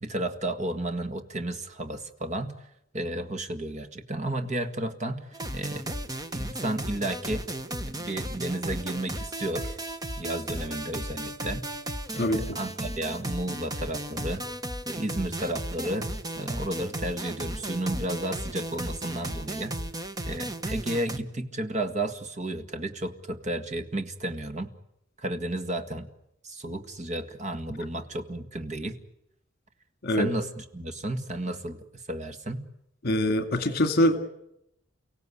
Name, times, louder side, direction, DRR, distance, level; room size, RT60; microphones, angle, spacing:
voice 1, 0.0-2.5 2.9-5.3 5.5-5.9 6.3-7.4 7.8-9.8 10.2-11.7 12.1-14.5 14.9-19.8 20.3-24.7 25.2-26.1 26.4-29.0 30.2-32.6, right 1 dB, 40° right, 8 dB, 1.9 m, -32 dB
sound 1, 5.3-21.2, right 1 dB, 20° right, 1.3 m, -35 dB
voice 2, 33.0-34.2, left 1 dB, 55° left, 9 dB, 2.1 m, -23 dB
30.0 x 17.0 x 9.8 m, 0.82 s
head